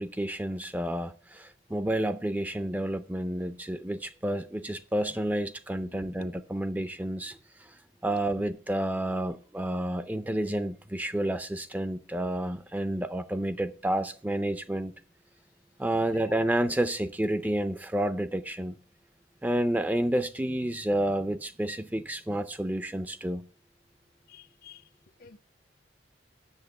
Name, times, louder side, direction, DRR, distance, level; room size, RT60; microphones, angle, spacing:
voice 1, 0.0-7.4 8.0-14.9 15.8-18.7 19.4-23.5, right 1 dB, 10° right, 0.4 m, -30 dB
voice 2, 5.9-6.3 16.3-16.5 24.3-24.8 25.2-25.4, left 6 dB, 50° left, 0.6 m, -49 dB
8.0 x 7.0 x 6.6 m
head